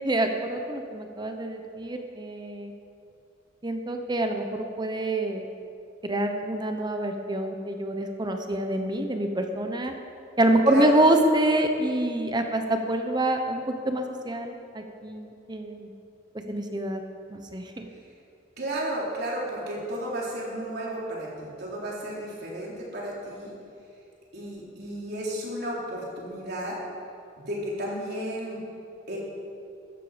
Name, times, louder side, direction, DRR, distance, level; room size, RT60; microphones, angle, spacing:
voice 1, 0.0-2.7 3.6-5.5 6.0-9.9 10.4-15.9 16.5-17.0 17.3-17.9, right 1 dB, 20° right, 5 dB, 0.9 m, -26 dB
voice 2, 10.7-11.0 18.6-23.5 24.3-26.8 27.4-28.6 29.1-29.2, right 1 dB, 55° right, -4 dB, 3.8 m, -33 dB
14.0 x 13.5 x 5.1 m, 2.5 s
head